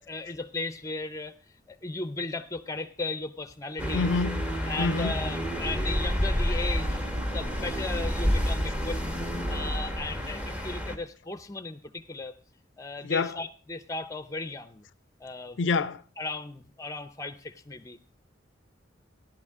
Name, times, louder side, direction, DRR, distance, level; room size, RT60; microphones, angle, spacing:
voice 1, 0.0-1.3 1.7-4.1 4.7-7.0 7.3-9.0 9.5-12.3 12.8-14.8 15.2-15.6 16.2-18.0, left 3 dB, 15° left, 0.7 m, -36 dB
sound 1, 3.8-11.0, equal, 5° right, 1.1 m, -29 dB
voice 2, 3.9-5.1 13.0-13.4 15.6-16.0, left 4 dB, 75° left, 0.5 m, -27 dB
14.5 x 11.5 x 3.6 m
head